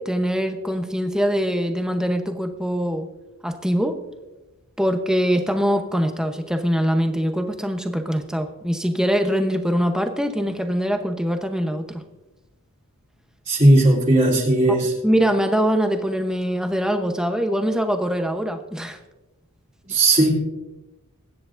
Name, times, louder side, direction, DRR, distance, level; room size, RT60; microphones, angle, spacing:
voice 1, 0.0-3.1 3.4-4.0 4.8-12.0 14.7-19.0, equal, 5° right, 6 dB, 0.8 m, -23 dB
voice 2, 13.5-14.9 19.9-20.3, right 1 dB, 30° right, -4 dB, 3.3 m, -16 dB
22.5 x 9.5 x 2.6 m, 1.0 s
head